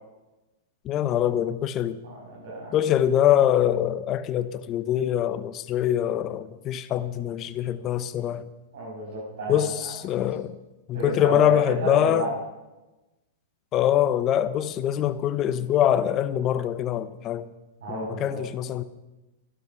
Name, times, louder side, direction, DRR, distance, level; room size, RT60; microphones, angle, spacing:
voice 1, 0.8-2.0 2.7-8.5 9.5-10.5 10.9-12.3 13.7-17.5 17.9-18.8, left 11 dB, 35° left, 0.9 m, -24 dB
voice 2, 2.0-2.7 8.7-9.9 10.9-12.3 17.8-18.4, right 2 dB, 75° right, 6.5 m, -32 dB
14.0 x 12.0 x 6.1 m
hypercardioid pair, 115°, 0 cm